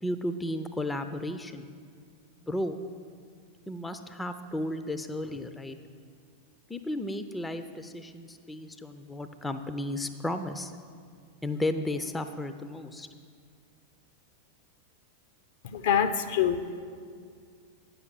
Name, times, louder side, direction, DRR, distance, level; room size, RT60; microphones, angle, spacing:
voice 1, 0.0-1.7 2.4-2.8 3.7-5.8 6.7-10.7 11.4-13.1, left 1 dB, 10° left, 9 dB, 0.5 m, -34 dB
voice 2, 15.6-16.8, left 8 dB, 55° left, 9 dB, 0.6 m, -26 dB
9.4 x 6.8 x 7.7 m, 2.1 s
figure-of-eight pair, 90°, 0 cm